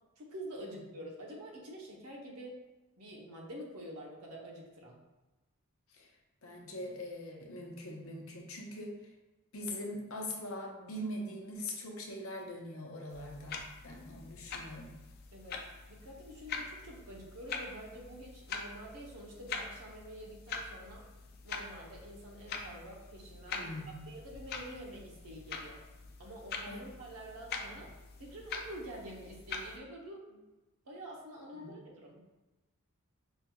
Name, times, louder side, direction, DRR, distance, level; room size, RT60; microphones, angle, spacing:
voice 1, 0.2-2.6 3.0-5.0 15.3-21.1 21.4-25.8 26.2-27.9 28.2-30.4 30.8-32.2, right 1 dB, 85° right, -1 dB, 0.9 m, -47 dB
voice 2, 6.4-9.0 9.5-14.9 23.5-24.1 26.7-26.9 31.5-31.8, left 1 dB, 65° left, 0 dB, 0.7 m, -42 dB
sound 1, 13.1-29.8, left 4 dB, 45° left, 0.4 m, -44 dB
5.4 x 2.9 x 2.3 m, 1.1 s
head